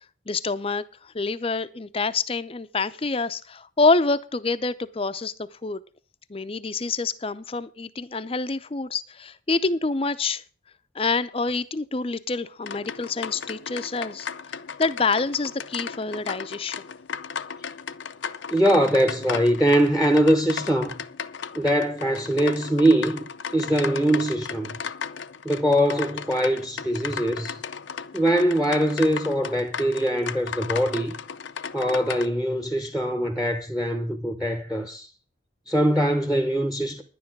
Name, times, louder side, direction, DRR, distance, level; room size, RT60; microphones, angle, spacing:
voice 1, 0.3-5.8 6.3-10.4 10.9-16.8, left 3 dB, 30° left, 0.6 m, -27 dB
sound 1, 12.6-32.3, left 6 dB, 70° left, 0.6 m, -35 dB
voice 2, 18.5-20.9 21.5-24.8 25.4-27.5 28.1-31.1 31.7-35.1 35.7-37.0, right 1 dB, 5° right, 0.9 m, -22 dB
11.0 x 9.7 x 6.0 m
head